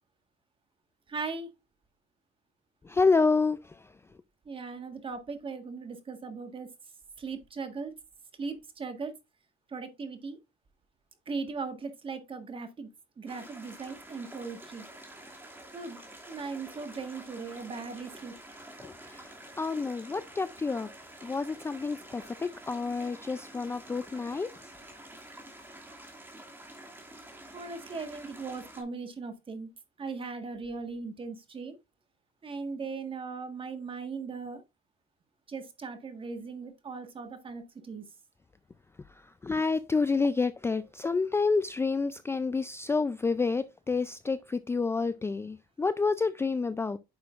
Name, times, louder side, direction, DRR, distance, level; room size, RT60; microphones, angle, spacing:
voice 1, 1.1-1.5 4.4-6.7 7.2-7.9 8.4-9.1 9.7-10.4 11.3-12.9 13.2-14.9 15.7-16.0 16.3-18.3 27.5-29.7 30.0-31.8 32.4-34.6 35.5-38.0, right 4 dB, 30° right, 1.5 m, -38 dB
voice 2, 2.8-3.8 18.8-20.9 21.2-24.5 39.4-47.0, left 4 dB, 15° left, 0.4 m, -29 dB
sound 1, 13.3-28.8, right 1 dB, 15° right, 2.4 m, -48 dB
9.4 x 6.1 x 2.5 m
cardioid pair, 110°, 17 cm